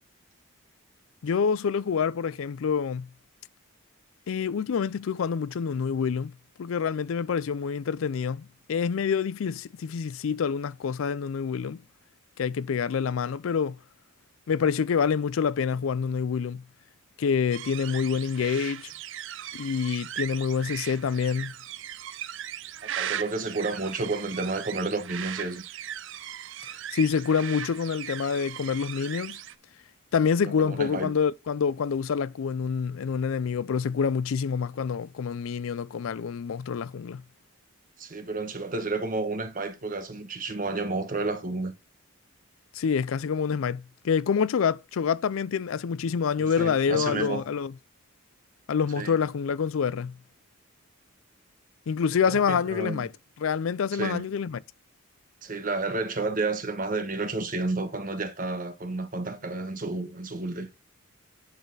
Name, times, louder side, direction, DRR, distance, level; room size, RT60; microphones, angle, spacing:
voice 1, 1.2-3.1 4.3-6.3 6.6-11.8 12.4-13.8 14.5-16.6 17.2-18.9 19.5-21.5 26.7-29.4 30.1-37.2 42.7-47.7 48.7-50.2 51.9-53.1 53.4-54.6, left 6 dB, 75° left, 0.4 m, -27 dB
sound 1, 17.5-29.5, right 10 dB, 60° right, 0.4 m, -38 dB
voice 2, 22.8-25.6 30.6-31.1 38.0-41.7 46.4-47.4 49.0-49.2 52.3-53.1 53.9-54.2 55.4-60.7, right 3 dB, 40° right, 1.2 m, -31 dB
10.0 x 4.2 x 3.9 m
head